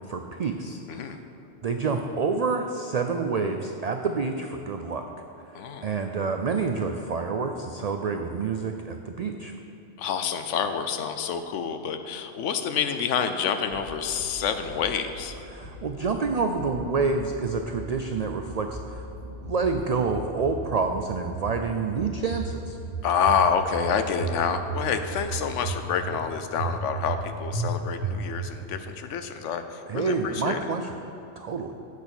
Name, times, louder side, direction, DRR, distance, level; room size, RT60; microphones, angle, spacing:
voice 1, 0.1-1.2 1.6-5.1 5.5-9.5 15.5-22.8 29.9-30.9 31.4-31.7, right 4 dB, 75° right, 5 dB, 0.3 m, -28 dB
voice 2, 5.5-5.9 10.0-15.4 23.0-30.7, left 7 dB, 80° left, 8 dB, 1.0 m, -28 dB
sound 1, 13.7-14.3 14.7-15.3 15.6-16.3 16.6-17.3 17.5-18.2 18.5-19.2 19.4-20.1 20.4-21.1 21.3-22.0 22.3-22.9 23.2-23.9 24.2-24.8 25.1-25.8 26.1-26.2 26.6-27.2 27.5-27.7 28.0-28.5, right 4 dB, 25° left, 2.3 m, -34 dB
8.2 x 6.3 x 7.0 m, 2.9 s
omnidirectional pair, 1.2 m